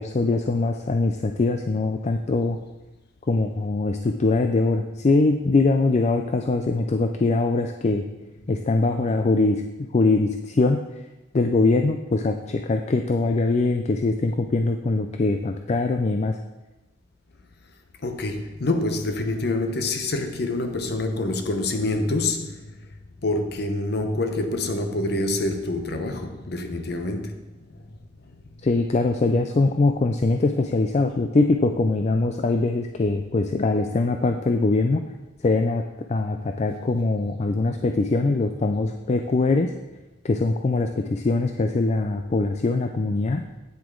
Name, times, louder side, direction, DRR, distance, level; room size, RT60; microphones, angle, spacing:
voice 1, 0.0-2.6 3.3-8.0 8.5-10.8 11.3-16.4 28.6-35.0 35.4-35.8 36.1-39.7 40.2-43.4, left 3 dB, 35° left, 0.4 m, -22 dB
voice 2, 18.0-22.5 23.2-27.4, left 2 dB, 60° left, 0.9 m, -26 dB
9.0 x 7.8 x 3.8 m
head